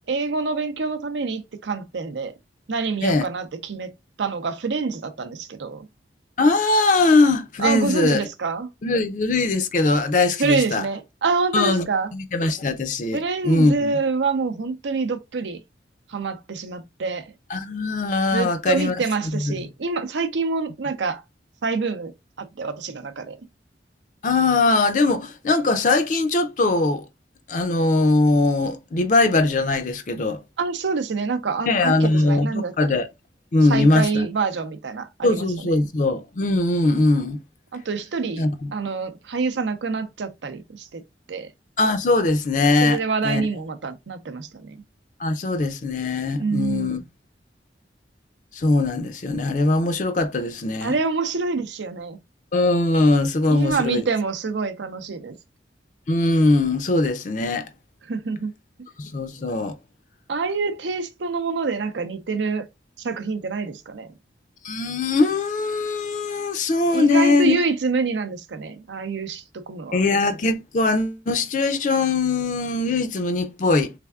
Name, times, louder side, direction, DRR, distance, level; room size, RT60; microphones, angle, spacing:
voice 1, 0.1-2.3 2.7-3.9 4.2-5.9 7.6-8.7 10.4-12.1 13.1-15.6 16.1-17.3 18.3-21.2 21.6-22.1 22.4-23.4 30.6-32.7 33.7-35.5 37.7-38.5 38.7-41.0 41.3-41.5 42.8-44.8 46.4-47.0 50.8-52.2 53.5-55.4 58.1-58.5 60.3-62.7 63.0-64.1 66.9-70.0, right 4 dB, 85° right, 0.6 m, -26 dB
voice 2, 6.4-8.3 8.8-10.8 11.5-11.9 12.1-13.9 17.5-19.0 19.3-19.7 24.2-27.1 27.5-30.4 31.7-33.1 33.5-34.3 35.2-37.4 38.4-38.7 41.8-43.4 45.2-47.0 48.5-50.9 52.5-54.0 56.1-57.7 59.0-59.8 64.6-67.5 69.9-73.9, left 2 dB, 45° left, 0.4 m, -21 dB
3.4 x 3.4 x 2.3 m
head